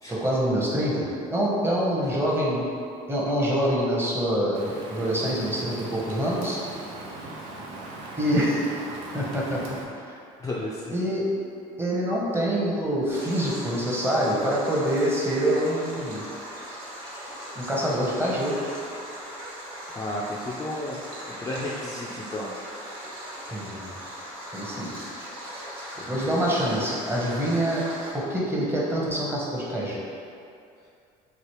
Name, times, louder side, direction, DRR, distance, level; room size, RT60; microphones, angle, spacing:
voice 1, 0.1-1.0 1.3-2.7 3.1-6.6 8.2-8.8 9.1-9.6 10.9-11.2 11.8-16.2 17.5-18.6 23.5-23.9 24.5-24.9 26.1-27.9 28.1-30.0, equal, 15° right, -5 dB, 0.9 m, -25 dB
Rain, 4.5-9.8, right 2 dB, 85° right, 0.5 m, -39 dB
voice 2, 10.4-11.0 19.9-21.0 21.4-22.5 26.0-26.3, left 1 dB, 20° left, -6 dB, 0.4 m, -33 dB
Stream, 13.1-28.1, equal, 70° right, 1.2 m, -39 dB
3.1 x 2.4 x 3.0 m, 2.5 s
supercardioid pair, 70°, 18 cm